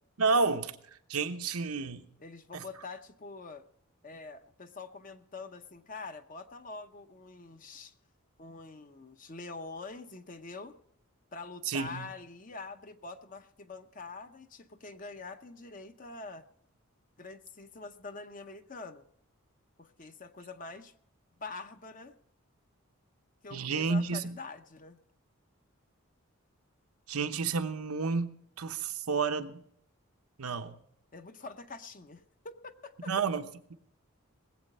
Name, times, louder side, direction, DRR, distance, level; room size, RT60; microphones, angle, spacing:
voice 1, 0.2-0.8 1.1-2.0 2.5-2.6 11.7-12.1 23.5-24.4 27.1-29.6 30.4-30.8 33.1-33.7, right 4 dB, 90° right, 7 dB, 1.0 m, -31 dB
voice 2, 2.2-3.6 4.0-7.9 8.4-10.8 11.3-16.4 17.2-19.1 19.8-20.9 21.4-22.2 23.4-25.0 31.1-33.1, left 3 dB, 35° left, 8 dB, 0.7 m, -45 dB
19.5 x 8.1 x 5.5 m, 0.69 s
head